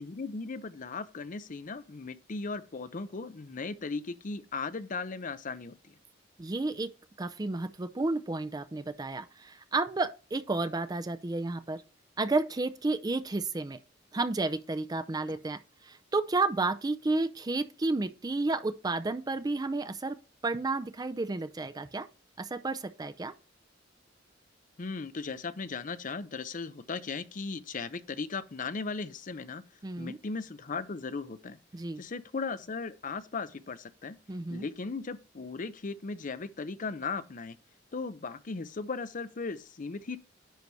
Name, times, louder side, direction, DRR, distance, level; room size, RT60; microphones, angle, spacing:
voice 1, 0.0-5.9 15.3-15.4 24.8-29.6 30.0-31.6 32.0-34.2 34.5-37.6 37.9-40.2, left 4 dB, 45° left, 0.6 m, -37 dB
voice 2, 6.4-6.9 7.2-11.8 12.2-13.8 14.1-20.2 20.4-22.1 22.4-23.3 29.8-30.2 31.7-32.0 34.3-34.6, right 3 dB, 20° right, 0.4 m, -31 dB
10.5 x 4.1 x 4.6 m
head